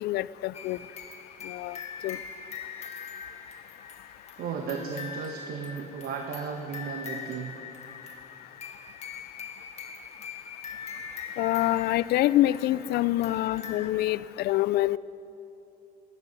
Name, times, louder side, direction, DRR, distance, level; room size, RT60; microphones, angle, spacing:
voice 1, 0.0-0.8 1.5-1.8 2.0-2.2 11.4-15.0, left 15 dB, 70° left, 19 dB, 0.4 m, -26 dB
sound 1, 0.5-13.9, left 6 dB, 40° left, 1.7 m, -42 dB
voice 2, 4.4-7.6, right 6 dB, 65° right, 3 dB, 1.2 m, -35 dB
13.5 x 9.3 x 9.4 m, 2.9 s
cardioid pair, 110°, 17 cm